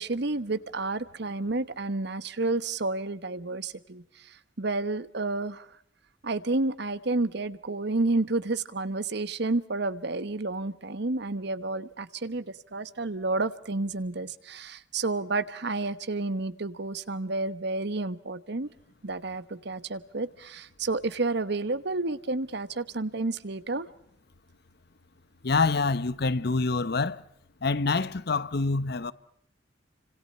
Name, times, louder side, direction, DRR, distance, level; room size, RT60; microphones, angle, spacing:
voice 1, 0.0-5.7 6.2-18.7 19.0-23.9, right 3 dB, 65° right, 1.2 m, -30 dB
voice 2, 25.4-27.2 27.6-29.1, left 3 dB, 60° left, 0.9 m, -26 dB
30.0 x 26.0 x 5.5 m
head